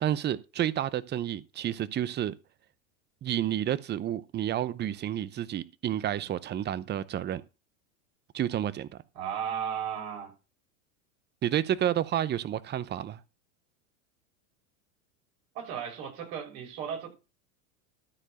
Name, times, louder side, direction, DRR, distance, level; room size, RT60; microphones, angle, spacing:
voice 1, 0.0-2.3 3.2-7.4 8.3-8.9 11.4-13.2, right 11 dB, 25° right, 0.7 m, -30 dB
voice 2, 9.1-10.3 15.5-17.1, right 8 dB, 60° right, 6.2 m, -35 dB
13.0 x 4.6 x 6.4 m
hypercardioid pair, 105°, 42 cm